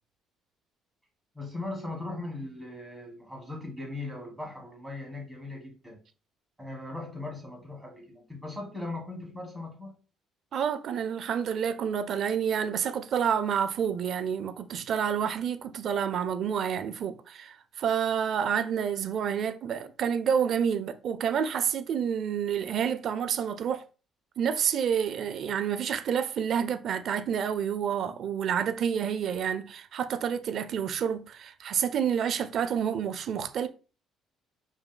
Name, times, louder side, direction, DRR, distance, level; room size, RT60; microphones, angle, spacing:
voice 1, 1.3-6.0 6.6-9.9, left 2 dB, 5° right, 2.1 m, -39 dB
voice 2, 10.5-23.8 24.4-33.7, right 8 dB, 55° right, 0.4 m, -29 dB
5.0 x 3.2 x 2.2 m
cardioid pair, 105°, 0 cm